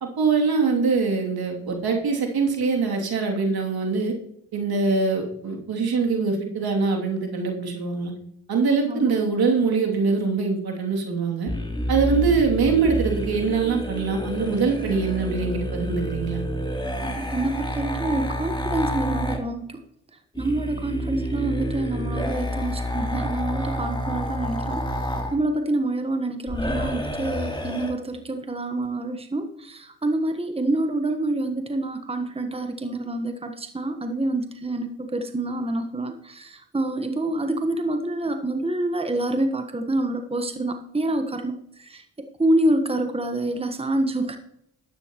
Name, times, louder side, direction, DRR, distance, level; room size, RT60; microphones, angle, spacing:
voice 1, 0.2-4.1 4.5-8.1 8.5-11.5 11.9-16.4, right 4 dB, 70° right, 1 dB, 2.9 m, -23 dB
sound 1, 11.5-19.4 20.3-25.3 26.5-27.9, equal, 10° left, 3.2 m, -29 dB
voice 2, 17.0-19.8 20.4-24.8 25.3-41.6 41.9-42.0 42.4-44.4, right 2 dB, 15° right, 6 dB, 1.3 m, -27 dB
12.0 x 10.0 x 3.1 m, 0.76 s
supercardioid pair, 45°, 39 cm